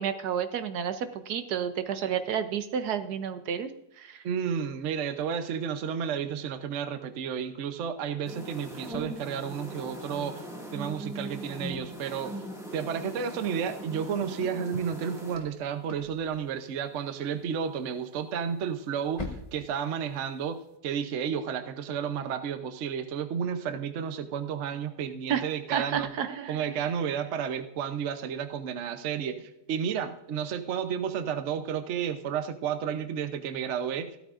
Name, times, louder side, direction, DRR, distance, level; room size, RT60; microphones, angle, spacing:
voice 1, 0.0-3.7 4.0-4.2 25.3-26.8, right 8 dB, 70° right, 10 dB, 1.2 m, -31 dB
voice 2, 4.2-12.3 12.7-26.1 26.5-34.2, right 7 dB, 55° right, 8 dB, 0.9 m, -32 dB
sound 1, 8.2-15.4, right 1 dB, ahead, 1.7 m, -40 dB
sound 2, 13.6-20.8, left 2 dB, 25° left, 1.0 m, -47 dB
15.5 x 12.5 x 2.5 m, 0.84 s
omnidirectional pair, 1.8 m